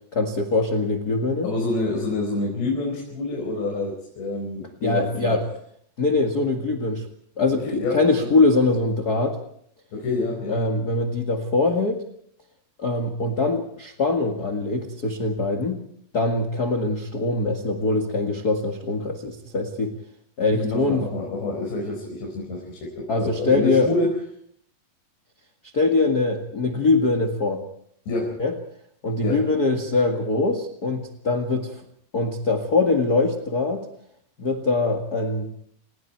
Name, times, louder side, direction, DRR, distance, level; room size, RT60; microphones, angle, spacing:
voice 1, 0.1-1.5 4.8-5.4 6.0-7.0 7.4-9.4 10.5-12.0 12.8-15.8 16.1-19.9 20.4-21.1 23.1-23.9 25.7-27.6 28.4-28.5 29.0-31.8 32.1-33.8 34.4-35.5, left 3 dB, 40° left, 6 dB, 1.3 m, -23 dB
voice 2, 1.4-5.4 7.6-8.3 9.9-10.6 20.5-24.1 28.1-28.4 29.2-29.5, left 2 dB, 85° left, -1 dB, 7.4 m, -27 dB
30.0 x 21.5 x 4.6 m, 0.67 s
omnidirectional pair, 4.8 m